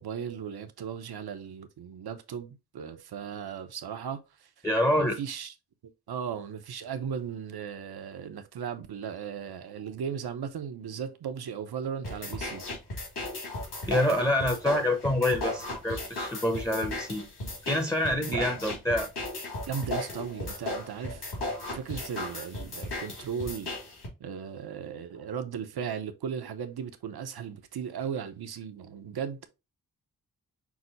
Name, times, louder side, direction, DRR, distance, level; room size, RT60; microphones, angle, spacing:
voice 1, 0.0-4.6 4.9-5.5 6.1-12.7 18.3-18.6 19.7-21.2 21.7-23.7 24.2-29.5, right 7 dB, 70° right, 0.8 m, -36 dB
voice 2, 4.6-5.2 13.9-17.2 17.6-19.1, left 1 dB, 10° left, 0.7 m, -26 dB
sound 1, 12.0-24.1, left 2 dB, 85° left, 2.8 m, -36 dB
6.0 x 2.1 x 3.9 m
cardioid pair, 60°, 39 cm